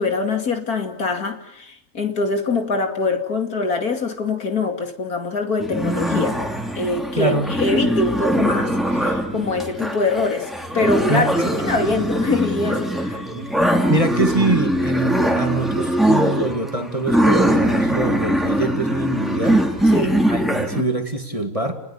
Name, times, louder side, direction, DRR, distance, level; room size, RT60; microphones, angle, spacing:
voice 1, 0.0-6.4 6.7-10.5 10.7-11.3 11.6-13.2 19.9-20.2, left 3 dB, 65° left, 5 dB, 2.9 m, -23 dB
sound 1, 5.6-20.8, right 1 dB, ahead, 2.7 m, -21 dB
voice 2, 7.2-7.5 11.1-11.5 13.3-13.5 13.9-19.6 20.3-21.8, right 2 dB, 20° right, 5 dB, 2.3 m, -24 dB
30.0 x 20.5 x 8.5 m, 0.78 s
omnidirectional pair, 1.7 m